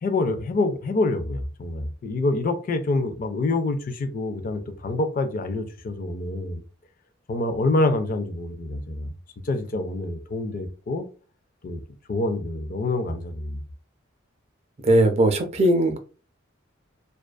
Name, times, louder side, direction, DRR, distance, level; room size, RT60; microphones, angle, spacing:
voice 1, 0.0-6.6 7.3-9.1 9.4-11.1 11.6-11.8 12.1-13.6, left 2 dB, 45° left, 0.3 m, -26 dB
voice 2, 14.8-16.0, right 1 dB, 30° right, 0.4 m, -19 dB
2.4 x 2.3 x 2.2 m
head